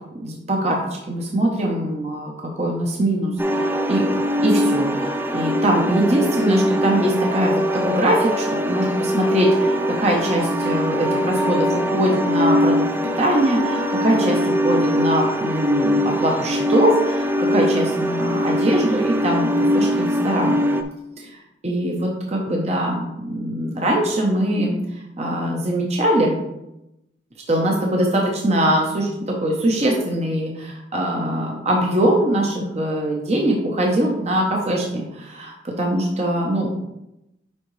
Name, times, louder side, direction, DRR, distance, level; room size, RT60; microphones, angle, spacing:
voice 1, 0.2-2.3 2.6-3.3 3.9-4.0 4.4-12.8 13.2-20.6 21.2-21.4 21.6-24.8 25.2-26.4 27.5-36.7, right 1 dB, 40° right, -1 dB, 0.9 m, -22 dB
sound 1, 3.4-20.8, equal, 10° right, 0.4 m, -22 dB
9.9 x 3.8 x 3.2 m, 0.89 s
head